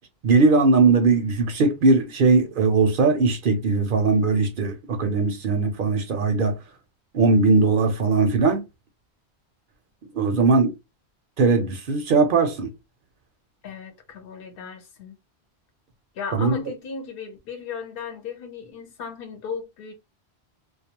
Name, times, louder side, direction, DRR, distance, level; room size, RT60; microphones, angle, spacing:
voice 1, 0.2-6.6 7.1-8.6 10.1-10.7 11.4-12.7 16.3-16.6, right 3 dB, 60° right, 0.6 m, -19 dB
voice 2, 13.6-15.2 16.1-19.9, left 5 dB, 60° left, 0.9 m, -36 dB
2.3 x 2.2 x 2.8 m
omnidirectional pair, 1.1 m